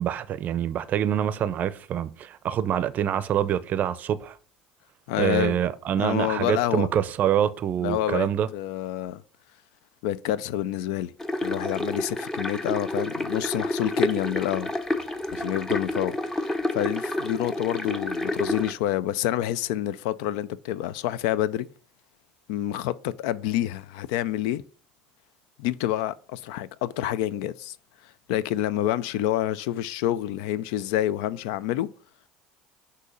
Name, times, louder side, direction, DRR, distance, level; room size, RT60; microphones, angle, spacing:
voice 1, 0.0-4.4 5.2-8.5, right 10 dB, 50° right, 0.5 m, -25 dB
voice 2, 5.1-5.6 6.0-6.9 7.8-9.2 10.0-11.1 11.4-14.7 15.3-21.7 22.5-24.6 25.6-27.7 28.3-31.9, left 13 dB, 75° left, 0.3 m, -28 dB
sound 1, 11.2-18.7, left 1 dB, 15° left, 0.7 m, -29 dB
6.2 x 2.8 x 5.5 m
supercardioid pair, 85°, 4 cm